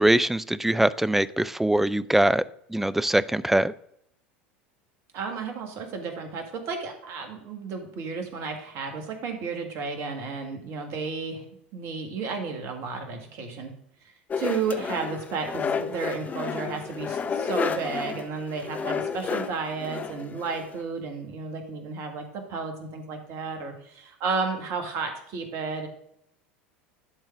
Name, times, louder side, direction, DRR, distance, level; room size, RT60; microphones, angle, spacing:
voice 1, 0.0-2.4 2.7-3.7, right 1 dB, 5° right, 17 dB, 0.3 m, -22 dB
voice 2, 5.1-11.4 11.7-13.7 14.4-25.9, right 4 dB, 50° right, 4 dB, 1.8 m, -32 dB
sound 1, 14.3-20.8, left 6 dB, 25° left, 0.7 m, -31 dB
11.0 x 3.9 x 4.8 m, 0.72 s
figure-of-eight pair, 75°, 6 cm